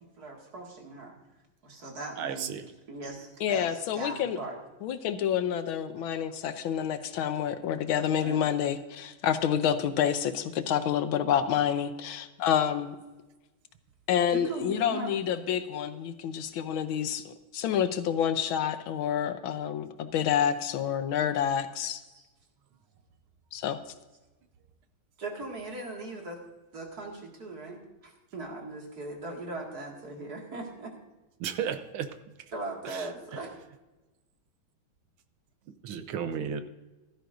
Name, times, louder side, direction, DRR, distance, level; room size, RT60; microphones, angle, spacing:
voice 1, 0.2-1.1 1.6-2.5 2.9-4.6 6.0-6.1 8.1-8.5 12.7-12.9 14.3-15.1 22.1-22.2 25.2-26.4 26.7-30.9 32.5-33.5, right 2 dB, 50° right, 2.5 m, -39 dB
voice 2, 2.2-2.6 31.4-32.1 32.8-33.1 35.8-36.6, right 8 dB, 80° right, 1.7 m, -33 dB
voice 3, 3.4-4.4 4.8-13.0 14.1-22.0 23.5-23.8, left 9 dB, 80° left, 1.5 m, -28 dB
15.5 x 12.5 x 2.6 m
omnidirectional pair, 2.3 m